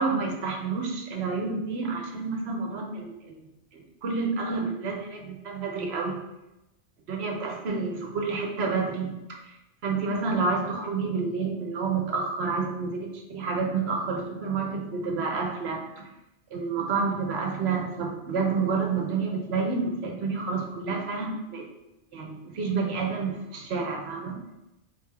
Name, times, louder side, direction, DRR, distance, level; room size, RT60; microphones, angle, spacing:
voice 1, 0.0-3.4 3.7-6.2 7.1-9.5 9.8-16.1 16.5-21.7 22.1-24.4, right 4 dB, 60° right, 2 dB, 0.9 m, -29 dB
4.1 x 3.4 x 3.3 m, 0.94 s
omnidirectional pair, 1.3 m